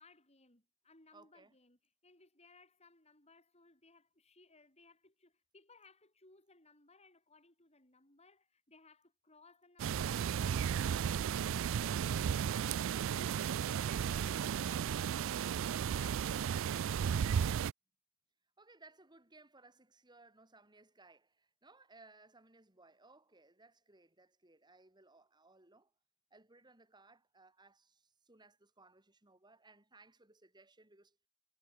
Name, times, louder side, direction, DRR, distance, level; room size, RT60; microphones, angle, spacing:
voice 1, 0.0-17.6, left 3 dB, 30° left, 6.7 m, -64 dB
voice 2, 1.1-1.6 18.6-25.9 26.3-31.2, right 3 dB, 20° right, 2.7 m, -62 dB
sound 1, 9.8-17.7, right 8 dB, 60° right, 0.3 m, -34 dB
head